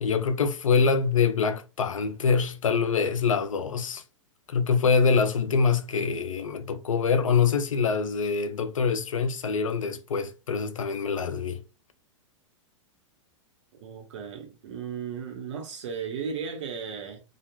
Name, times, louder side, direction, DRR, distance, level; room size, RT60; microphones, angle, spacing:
voice 1, 0.0-4.0 4.5-11.6, left 5 dB, 85° left, 0.4 m, -25 dB
voice 2, 13.8-17.2, right 6 dB, 65° right, 1.0 m, -35 dB
2.9 x 2.4 x 2.2 m
hypercardioid pair, 110°, 17 cm